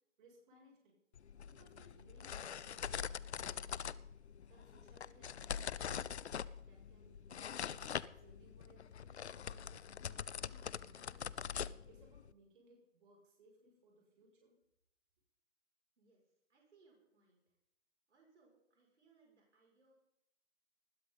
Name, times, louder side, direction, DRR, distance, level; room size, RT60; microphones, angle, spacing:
voice 1, 0.2-1.0 1.5-3.9 4.5-6.0 6.6-7.8 8.1-11.4 11.8-14.6, right 1 dB, 45° right, -1 dB, 7.5 m, -66 dB
sound 1, 1.2-12.3, left 8 dB, 65° left, 0.7 m, -44 dB
voice 2, 16.0-17.6 18.1-19.9, right 4 dB, 70° right, -2 dB, 6.6 m, -70 dB
20.5 x 14.5 x 4.1 m, 0.81 s
figure-of-eight pair, 135°, 36 cm